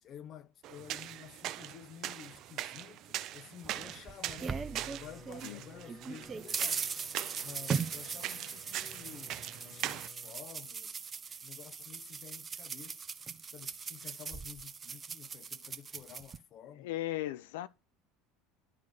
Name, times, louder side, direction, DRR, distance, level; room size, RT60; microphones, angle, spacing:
voice 1, 0.0-4.6 4.9-6.9 7.4-10.9 11.4-13.0 13.5-16.9, left 9 dB, 45° left, 0.9 m, -51 dB
sound 1, 0.6-10.1, right 13 dB, 50° right, 0.5 m, -42 dB
sound 2, 3.6-5.5 5.9-16.4, right 6 dB, 30° right, 0.8 m, -39 dB
Bowed string instrument, 4.2-10.5, left 3 dB, 20° left, 1.6 m, -56 dB
voice 2, 16.7-17.7, left 15 dB, 70° left, 0.5 m, -37 dB
11.5 x 4.1 x 6.8 m
figure-of-eight pair, 70°, 0 cm